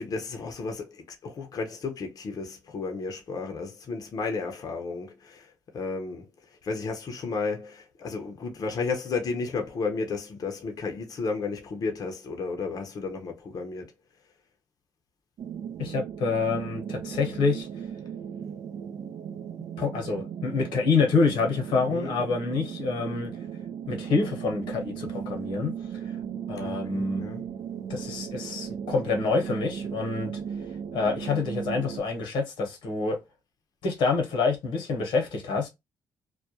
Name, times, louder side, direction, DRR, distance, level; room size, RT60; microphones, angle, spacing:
voice 1, 0.0-13.9 21.9-22.2 26.6-27.4, left 4 dB, 50° left, 0.6 m, -33 dB
sound 1, 15.4-32.0, right 8 dB, 60° right, 0.4 m, -36 dB
voice 2, 15.8-17.7 19.8-23.4 23.9-25.7 26.1-26.2 26.5-27.2 27.9-30.4 30.9-33.2 33.8-35.7, left 4 dB, 85° left, 0.9 m, -27 dB
2.3 x 2.1 x 2.7 m
supercardioid pair, 70°, 8 cm